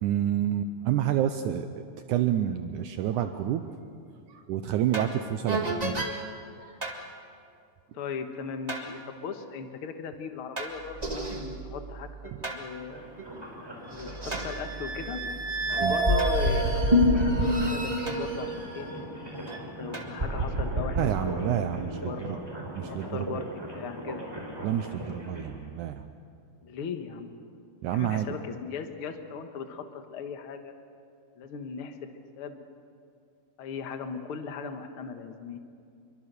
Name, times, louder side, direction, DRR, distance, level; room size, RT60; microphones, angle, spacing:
voice 1, 0.0-1.7 2.1-3.7 4.3-6.2 6.6-6.8 15.8-16.0 21.0-22.4 22.8-23.4 24.6-26.0 27.8-28.4, right 10 dB, 85° right, 8 dB, 1.8 m, -29 dB
sound 1, 4.9-5.1 5.5-6.1 6.8-7.0 8.7-8.9 10.6-12.6 13.2-13.3 13.9-19.6 19.9-21.0, equal, 40° right, 0.5 m, -28 dB
voice 2, 7.9-13.1 13.9-15.2 15.7-18.9 19.7-22.4 22.9-23.4 23.7-24.2 26.6-27.3 27.9-30.7 31.4-32.0 32.4-32.6 33.6-35.6, left 6 dB, 55° left, 6 dB, 1.6 m, -38 dB
sound 2, 12.9-25.5, right 1 dB, 5° right, 4.3 m, -41 dB
26.5 x 23.5 x 6.8 m, 2.3 s
omnidirectional pair, 4.4 m